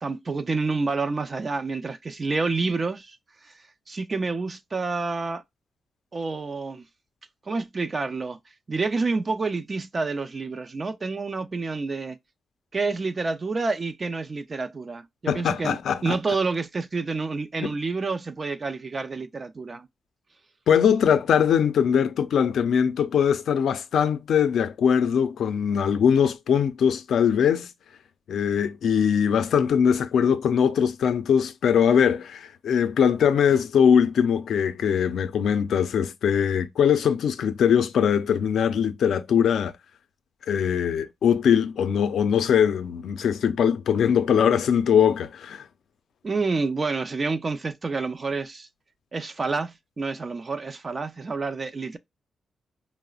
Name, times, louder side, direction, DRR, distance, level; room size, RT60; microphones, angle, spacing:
voice 1, 0.0-3.2 3.4-5.4 6.1-6.8 7.5-8.4 8.7-12.2 12.7-19.9 46.2-48.7 49.1-52.0, right 3 dB, 35° right, 0.4 m, -28 dB
voice 2, 15.3-16.2 17.6-17.7 20.7-27.7 28.3-39.7 40.5-45.6, left 8 dB, 80° left, 0.4 m, -21 dB
4.7 x 2.0 x 2.3 m
cardioid pair, 110°, 0 cm